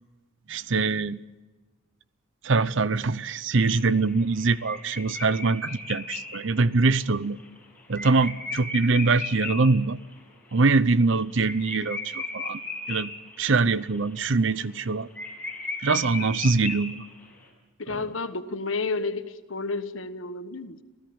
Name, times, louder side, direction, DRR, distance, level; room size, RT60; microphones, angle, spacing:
voice 1, 0.5-1.2 2.4-7.4 7.9-10.0 10.5-12.6 12.9-13.1 13.4-15.1 15.8-17.0 17.9-18.1, right 3 dB, 70° right, 0.7 m, -23 dB
sound 1, 3.6-9.8 10.1-10.2 10.5-10.6 10.9-13.5 13.9-14.2 14.5-14.6 14.8-14.9 15.2-17.2, left 3 dB, 5° left, 6.4 m, -36 dB
voice 2, 17.8-20.8, left 3 dB, 75° left, 1.4 m, -31 dB
27.5 x 16.0 x 8.8 m
head